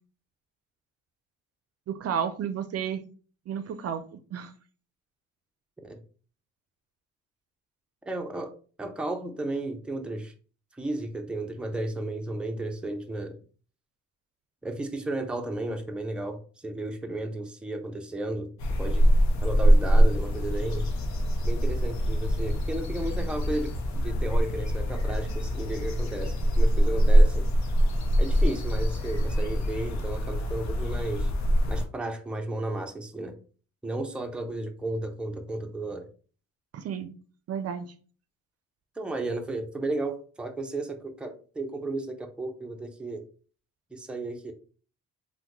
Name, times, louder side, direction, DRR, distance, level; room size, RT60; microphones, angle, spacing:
voice 1, 1.9-3.0 3.5-4.5 36.7-37.1 37.5-37.9, right 8 dB, 55° right, 9 dB, 0.5 m, -32 dB
voice 2, 8.0-8.5 8.8-10.3 10.7-13.4 14.6-18.5 18.8-19.1 19.4-20.9 21.4-27.5 28.2-31.3 31.7-33.4 33.8-36.1 39.0-43.2 43.9-44.5, right 2 dB, 5° right, 4 dB, 0.5 m, -33 dB
sound 1, 18.6-31.8, equal, 65° left, 0.7 m, -24 dB
3.4 x 2.2 x 3.0 m, 0.39 s
cardioid pair, 90°, 30 cm